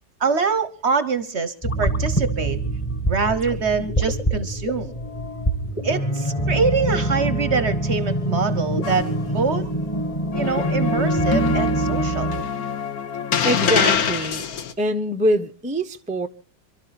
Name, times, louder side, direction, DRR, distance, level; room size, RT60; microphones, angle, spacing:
voice 1, 0.2-2.6 3.1-4.9 5.8-9.7 10.3-12.3, right 5 dB, 50° right, 0.9 m, -24 dB
sound 1, 1.6-12.4, right 1 dB, 20° left, 1.4 m, -24 dB
sound 2, 8.8-9.7 10.3-14.7, left 7 dB, 55° left, 1.4 m, -25 dB
voice 2, 13.4-14.5 14.8-16.3, equal, 10° right, 0.4 m, -23 dB
27.0 x 12.5 x 4.1 m
omnidirectional pair, 2.0 m